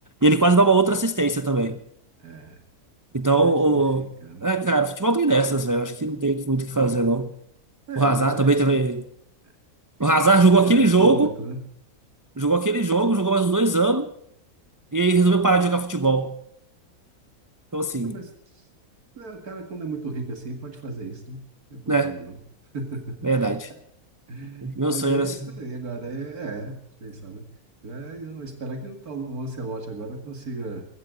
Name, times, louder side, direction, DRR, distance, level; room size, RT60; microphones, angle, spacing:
voice 1, 0.2-1.8 3.1-4.1 4.4-7.3 8.0-9.1 10.0-11.4 12.4-14.1 14.9-16.4 17.7-18.2 21.9-22.1 23.2-23.7 24.6-25.5, right 3 dB, 20° right, 0.5 m, -20 dB
voice 2, 2.2-2.6 3.4-4.5 7.9-8.6 10.6-11.6 18.0-18.3 18.5-18.6 19.2-21.4 21.7-22.4 22.7-23.4 24.3-27.5 27.8-30.9, right 3 dB, 70° right, 2.6 m, -35 dB
21.0 x 16.5 x 3.9 m
omnidirectional pair, 1.6 m